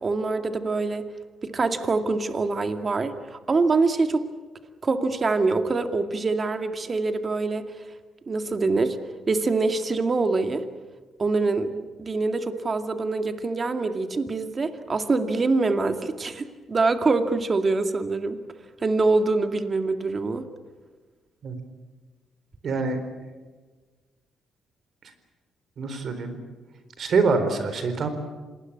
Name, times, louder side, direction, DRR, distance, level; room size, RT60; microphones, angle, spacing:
voice 1, 0.0-1.1 1.4-4.2 4.8-7.7 8.3-9.0 9.3-10.6 11.2-18.4 18.8-20.4, right 3 dB, 35° right, 8 dB, 2.2 m, -24 dB
voice 2, 22.6-23.0 25.8-26.4 27.0-28.1, right 4 dB, 55° right, 9 dB, 4.2 m, -25 dB
27.0 x 20.0 x 8.7 m, 1.3 s
cardioid pair, 90°, 0 cm